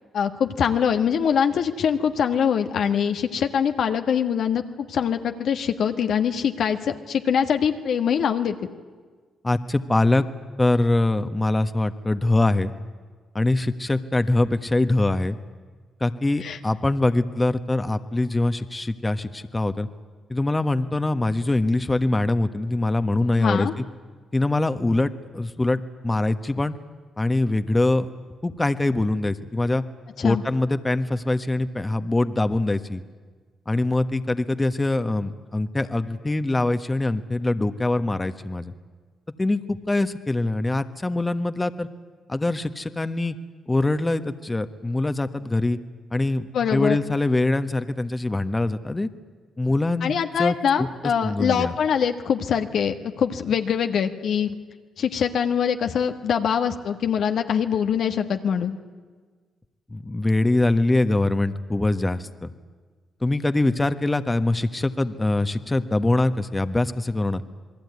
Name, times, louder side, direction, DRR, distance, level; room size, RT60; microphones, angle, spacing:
voice 1, 0.1-8.6 16.4-16.6 23.4-23.7 30.2-30.4 46.5-47.0 50.0-54.5 55.0-58.8, left 7 dB, 70° left, 6 dB, 1.5 m, -23 dB
voice 2, 9.4-10.3 10.6-12.7 13.3-15.4 16.0-19.9 20.3-23.7 24.3-26.7 27.2-28.1 28.4-29.8 30.2-33.0 33.7-38.7 39.4-41.9 42.3-43.3 43.7-45.8 46.1-49.1 49.6-50.9 51.2-51.7 59.9-62.5 63.2-67.4, left 2 dB, 20° left, 10 dB, 1.4 m, -23 dB
27.5 x 20.5 x 9.6 m, 1.5 s
supercardioid pair, 55°, 0 cm